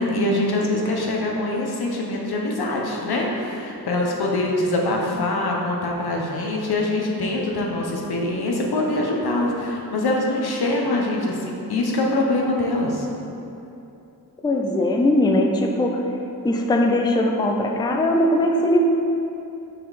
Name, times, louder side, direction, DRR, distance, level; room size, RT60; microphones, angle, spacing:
voice 1, 0.0-13.1, left 2 dB, 85° left, -1 dB, 1.0 m, -24 dB
voice 2, 14.4-16.0 16.4-18.8, left 1 dB, 10° left, 1 dB, 0.4 m, -20 dB
5.6 x 5.2 x 4.1 m, 2.8 s
wide cardioid pair, 165°, 37 cm